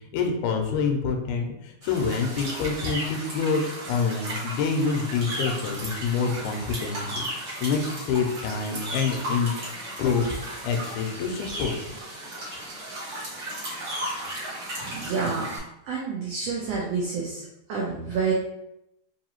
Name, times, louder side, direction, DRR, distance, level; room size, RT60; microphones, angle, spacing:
voice 1, 0.1-9.6 10.0-11.8, left 5 dB, 80° left, 3 dB, 2.0 m, -27 dB
sound 1, 1.8-15.6, right 1 dB, 50° right, 1.8 m, -35 dB
voice 2, 14.9-15.5 15.9-18.3, right 5 dB, 80° right, -3 dB, 1.4 m, -29 dB
4.8 x 2.7 x 2.9 m, 0.84 s
omnidirectional pair, 3.5 m